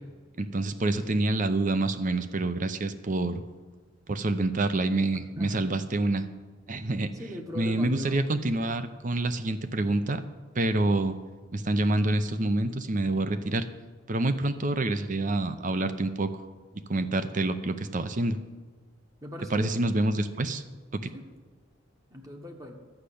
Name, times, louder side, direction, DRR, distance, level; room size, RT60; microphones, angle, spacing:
voice 1, 0.4-3.4 4.1-6.3 6.7-7.1 7.6-10.2 10.5-11.2 11.5-13.7 14.1-16.3 16.9-18.4 19.5-20.6 21.0-21.1, right 2 dB, 40° right, 11 dB, 0.7 m, -27 dB
voice 2, 5.4-5.7 6.7-8.3 19.2-19.8 21.1-21.3 22.1-22.8, left 1 dB, 15° right, 2 dB, 1.1 m, -40 dB
11.5 x 6.4 x 8.5 m, 1.4 s
head